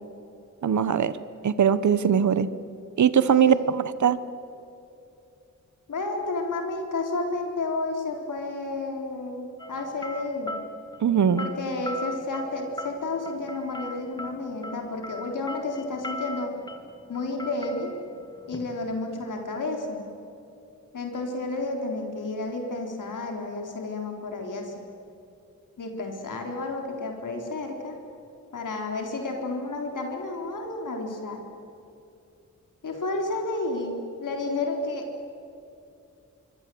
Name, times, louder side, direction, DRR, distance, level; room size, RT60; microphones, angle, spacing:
voice 1, 0.6-1.1 1.4-2.5 3.0-4.2 11.0-11.5, right 8 dB, 70° right, 14 dB, 1.0 m, -21 dB
voice 2, 3.3-3.7 5.9-10.6 11.4-16.5 17.1-17.9 18.5-20.0 20.9-24.8 25.8-28.0 28.5-31.4 32.8-35.1, left 2 dB, 85° left, 2 dB, 3.9 m, -31 dB
sound 1, 9.6-19.5, left 1 dB, 15° left, 2.1 m, -40 dB
26.0 x 25.0 x 7.8 m, 2.8 s
wide cardioid pair, 160°, 30 cm